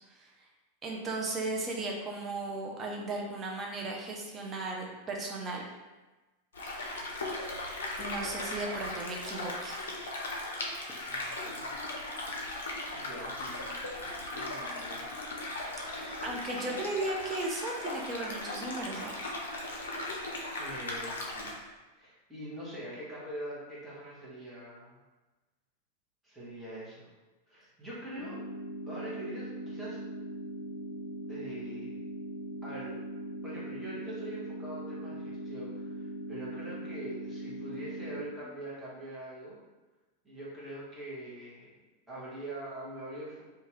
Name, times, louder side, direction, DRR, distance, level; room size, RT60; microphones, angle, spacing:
voice 1, 0.8-5.7 8.0-9.8 15.8-19.1, right 2 dB, 25° right, -1 dB, 0.5 m, -36 dB
sound 1, 6.5-21.5, left 2 dB, 65° left, 0.5 m, -38 dB
voice 2, 11.1-11.8 12.9-15.2 16.2-16.8 20.6-21.6 22.0-25.0 26.2-27.0 27.5-28.4 28.8-30.0 31.3-31.9 32.6-33.0 33.4-39.5 40.2-41.7 42.1-43.4, right 1 dB, 10° right, -8 dB, 1.1 m, -43 dB
sound 2, 28.2-38.2, right 1 dB, 35° left, 0.7 m, -40 dB
2.8 x 2.3 x 3.0 m, 1.2 s
figure-of-eight pair, 90°, 0 cm